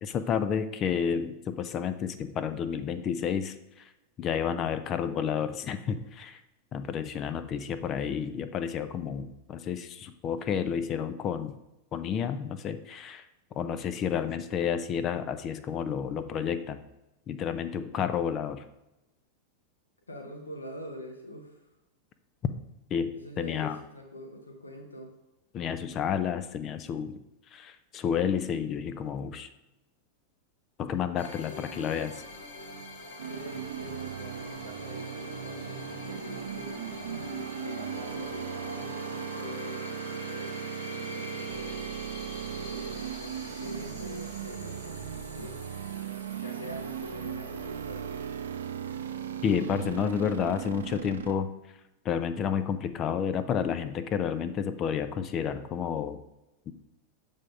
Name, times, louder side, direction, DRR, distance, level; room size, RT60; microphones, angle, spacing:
voice 1, 0.0-3.5 4.2-6.4 6.7-11.6 11.9-13.2 13.6-16.8 17.3-18.7 22.9-23.8 25.5-27.2 27.5-29.5 30.8-32.1 49.4-51.5 52.0-56.2 56.7-56.8, left 7 dB, 30° left, 11 dB, 0.4 m, -30 dB
voice 2, 20.1-21.7 23.1-25.1 33.3-36.9 37.6-41.9 42.6-45.6 46.4-48.4, equal, 80° left, 3 dB, 0.9 m, -44 dB
sound 1, 31.2-49.6, left 2 dB, 55° left, 1.3 m, -45 dB
sound 2, 33.2-51.3, right 8 dB, 65° right, 0.5 m, -37 dB
7.5 x 3.6 x 5.2 m, 0.94 s
figure-of-eight pair, 90°, 0 cm